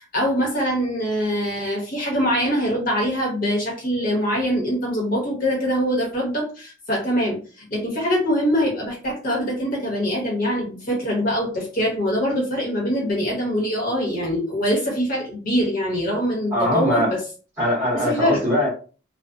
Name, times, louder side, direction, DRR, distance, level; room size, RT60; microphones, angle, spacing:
voice 1, 0.0-17.2 17.9-18.4, equal, 45° left, -2 dB, 1.1 m, -23 dB
voice 2, 16.5-17.1 17.6-18.7, equal, 10° right, -7 dB, 1.0 m, -21 dB
2.6 x 2.2 x 2.3 m, 0.37 s
head